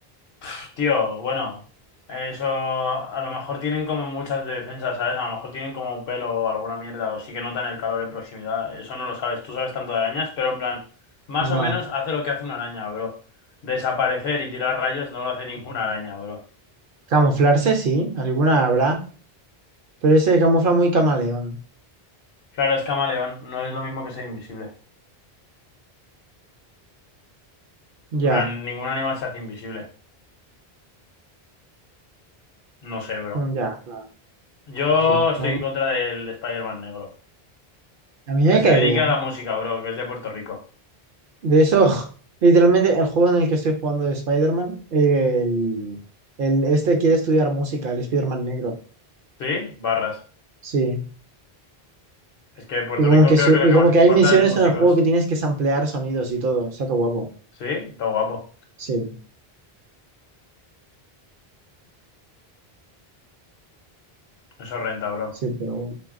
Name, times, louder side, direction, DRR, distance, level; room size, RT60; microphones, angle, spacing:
voice 1, 0.4-1.6 2.1-10.8 11.3-13.1 13.6-16.4 22.5-24.7 28.2-29.9 32.8-33.4 34.7-37.1 38.5-40.6 49.4-50.2 52.6-54.9 57.6-58.4 64.6-65.3, left 5 dB, 70° left, 3 dB, 0.9 m, -26 dB
voice 2, 11.4-11.7 17.1-19.0 20.0-21.6 28.1-28.4 33.3-34.0 35.4-35.6 38.3-39.1 41.4-42.1 42.4-46.0 46.4-48.7 50.6-51.0 53.0-57.3 58.8-59.1 65.4-65.9, right 2 dB, 65° right, 4 dB, 0.7 m, -19 dB
3.2 x 2.2 x 2.4 m, 0.40 s
omnidirectional pair, 1.0 m